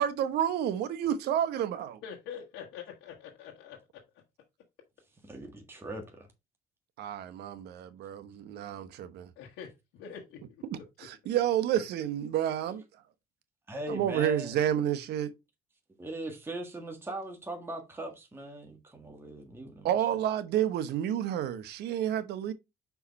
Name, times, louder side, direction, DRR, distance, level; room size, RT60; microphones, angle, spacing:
voice 1, 0.0-2.0 7.0-9.3 10.7-12.8 13.9-15.3 19.8-22.5, right 10 dB, 75° right, 0.9 m, -30 dB
voice 2, 2.0-4.0 9.4-10.4, left 7 dB, 85° left, 1.3 m, -45 dB
voice 3, 5.2-6.3 13.7-14.6 16.0-19.9, right 1 dB, 15° right, 1.5 m, -40 dB
5.6 x 4.7 x 4.1 m
cardioid pair, 110°, 17 cm